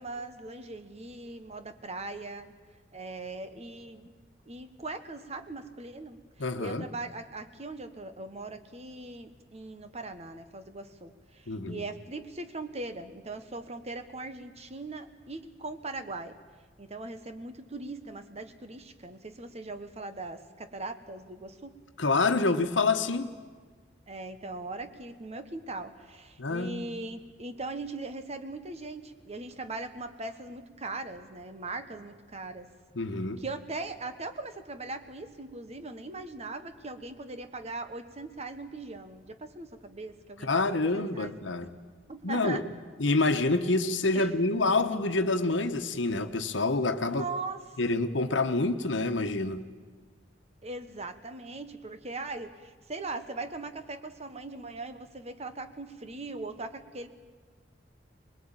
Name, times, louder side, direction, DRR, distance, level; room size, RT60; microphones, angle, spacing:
voice 1, 0.0-2.5 2.9-4.1 4.5-16.4 16.8-21.8 24.1-32.7 33.4-41.3 42.1-42.6 44.1-44.3 47.0-47.8 50.6-57.1, right 2 dB, 35° right, 1.4 m, -40 dB
voice 2, 6.4-6.9 11.5-11.8 22.0-23.3 26.4-26.8 33.0-33.4 40.4-41.7 42.2-42.6 43.0-47.2 47.8-49.6, left 3 dB, 90° left, 1.2 m, -27 dB
22.5 x 21.0 x 9.0 m
head